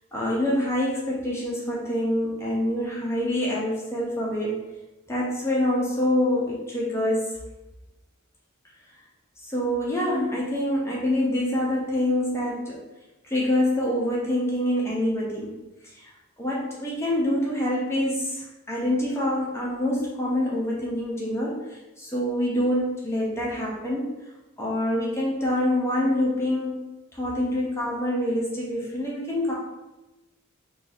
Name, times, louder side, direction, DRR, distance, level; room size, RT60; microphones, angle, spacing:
voice 1, 0.1-4.6 5.1-7.4 9.4-12.9 13.2-15.5 15.8-16.1 16.4-24.1 24.6-29.5, left 1 dB, 10° left, -5 dB, 0.6 m, -26 dB
2.6 x 2.3 x 4.1 m, 1.0 s
head